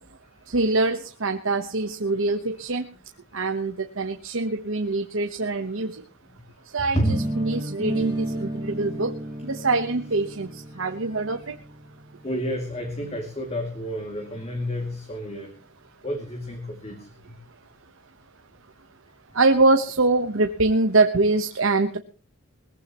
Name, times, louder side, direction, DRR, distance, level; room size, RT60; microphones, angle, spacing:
voice 1, 0.5-2.8 3.3-6.0 6.7-9.1 9.4-11.6 19.3-22.0, right 3 dB, 65° right, 5 dB, 1.1 m, -24 dB
voice 2, 6.8-7.2 12.2-15.5 16.0-17.3, equal, 30° left, 3 dB, 2.6 m, -30 dB
sound 1, 7.0-12.9, right 1 dB, 20° right, 2.1 m, -32 dB
21.0 x 15.5 x 3.0 m, 0.39 s
head